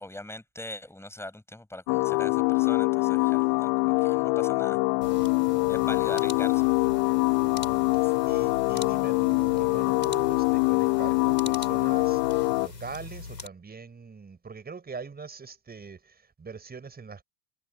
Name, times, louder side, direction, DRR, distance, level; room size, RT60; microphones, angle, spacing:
voice 1, 0.0-4.8 5.7-6.7 8.0-8.1, left 1 dB, 5° left, 6.7 m, -41 dB
sound 1, 1.9-12.7, left 40 dB or more, 45° left, 0.8 m, -24 dB
sound 2, 5.0-13.5, left 3 dB, 90° left, 7.1 m, -41 dB
voice 2, 5.5-5.8 7.4-17.2, right 5 dB, 20° right, 6.1 m, -43 dB
figure-of-eight pair, 80°, 48 cm